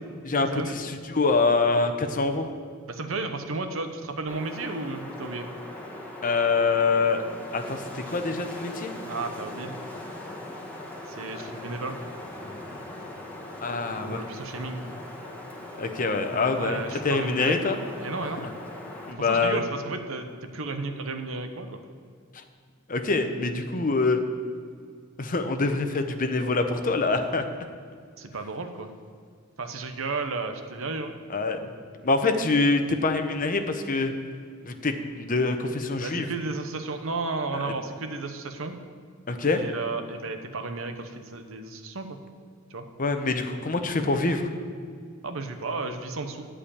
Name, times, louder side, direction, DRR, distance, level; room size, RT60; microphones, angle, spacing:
voice 1, 0.2-2.5 6.2-7.2 7.5-8.9 11.4-11.5 13.6-14.2 15.8-17.8 19.1-19.6 22.3-22.4 22.9-24.2 25.2-27.5 31.3-31.6 32.0-34.1 34.7-36.3 37.5-37.7 39.3-39.6 43.0-44.5, left 3 dB, 40° left, 7 dB, 0.8 m, -25 dB
voice 2, 2.9-5.5 9.1-9.7 11.1-12.0 14.1-14.8 16.5-17.6 18.0-18.4 19.2-21.8 28.2-28.9 29.6-31.1 36.0-38.8 39.6-42.2 42.7-42.8 45.2-46.5, right 3 dB, 70° right, 6 dB, 0.9 m, -33 dB
Wind, 4.3-19.1, left 1 dB, 10° left, 1.5 m, -40 dB
11.5 x 5.0 x 8.6 m, 2.1 s
head